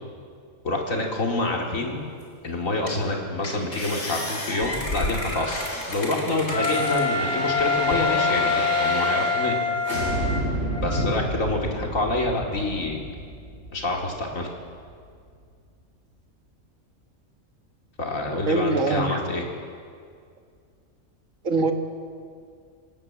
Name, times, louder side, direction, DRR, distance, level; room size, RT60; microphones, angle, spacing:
voice 1, 0.6-2.0 2.4-5.6 5.9-9.6 10.8-13.0 13.7-14.5 18.0-19.4, left 2 dB, 80° left, 0 dB, 3.1 m, -27 dB
sound 1, 2.2-2.3 2.9-3.1 3.4-7.0 7.6-8.2, left 1 dB, 65° left, 4.5 m, -32 dB
sound 2, 4.8-9.6 9.8-14.7 15.1-15.2, right 1 dB, 55° right, 7.0 m, -32 dB
Wind instrument woodwind instrument, 6.5-11.2, left 4 dB, 20° right, 1.5 m, -25 dB
voice 2, 18.5-19.2 21.4-21.7, right 3 dB, 75° right, 5 dB, 1.9 m, -23 dB
27.0 x 11.0 x 8.7 m, 2.2 s
omnidirectional pair, 1.4 m